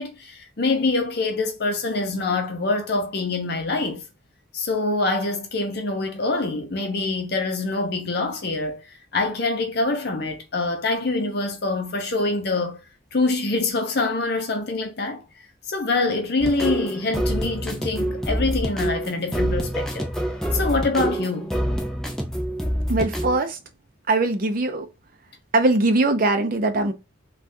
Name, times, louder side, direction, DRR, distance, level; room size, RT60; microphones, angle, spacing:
voice 1, 0.0-4.0 4.5-12.8 13.1-15.2 15.7-20.1 20.5-21.5, left 3 dB, 55° left, 0.7 m, -25 dB
sound 1, 16.4-23.4, equal, ahead, 0.5 m, -26 dB
voice 2, 22.9-23.6 24.1-24.9 25.5-26.9, right 2 dB, 45° right, 0.5 m, -21 dB
3.4 x 2.4 x 2.6 m
head